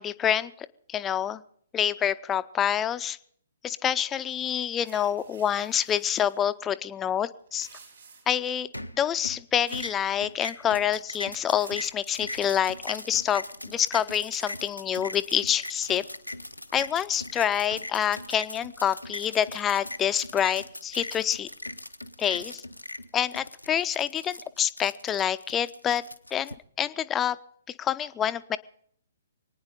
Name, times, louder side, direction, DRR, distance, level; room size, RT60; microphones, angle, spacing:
voice 1, 0.0-1.4 1.7-3.2 3.6-7.7 8.3-8.7 8.9-16.1 16.7-21.5 22.2-22.6 23.1-26.0 26.3-27.4 27.8-28.6, left 9 dB, 15° left, 14 dB, 0.5 m, -27 dB
sound 1, 4.8-6.5 7.4-8.5 9.7-10.0 10.3-10.8 11.2-11.9, right 5 dB, 60° right, 4.7 m, -52 dB
sound 2, 8.7-9.4 9.7-26.5, left 1 dB, 90° left, 0.8 m, -40 dB
25.0 x 9.6 x 5.0 m, 0.63 s
figure-of-eight pair, 125°, 0 cm